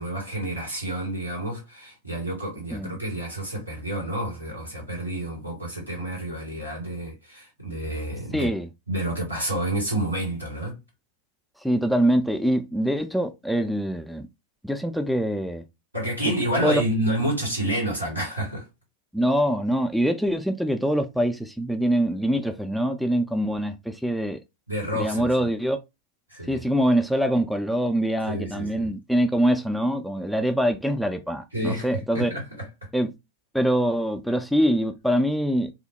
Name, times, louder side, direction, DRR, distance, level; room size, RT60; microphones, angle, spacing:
voice 1, 0.0-8.5 8.9-10.8 15.9-18.7 24.7-25.3 26.3-26.6 28.3-28.9 31.5-32.7, right 1 dB, 90° right, 2.0 m, -29 dB
voice 2, 8.3-8.7 11.6-14.3 14.6-15.6 16.6-16.8 19.1-24.4 24.9-25.8 26.5-32.3 32.9-33.1 33.5-35.7, equal, ahead, 0.3 m, -24 dB
2.9 x 2.0 x 2.8 m
figure-of-eight pair, 90°, 0 cm